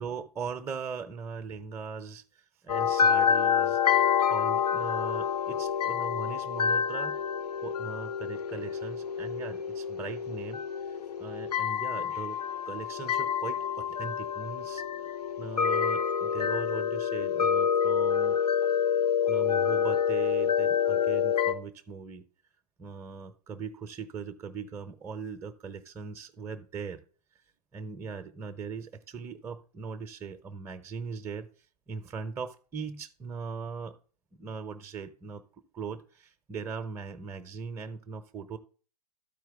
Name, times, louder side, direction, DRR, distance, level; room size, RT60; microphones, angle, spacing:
voice 1, 0.0-3.8 4.3-7.2 7.6-10.6 10.9-12.4 12.7-14.8 15.4-18.3 19.3-22.2 22.8-27.0 27.7-31.5 31.9-33.9 34.3-35.4 35.7-38.6, right 5 dB, 10° right, 6 dB, 0.6 m, -40 dB
sound 1, 2.7-21.5, left 7 dB, 70° left, 0.8 m, -27 dB
13.0 x 4.6 x 3.5 m, 0.38 s
figure-of-eight pair, 105°, 21 cm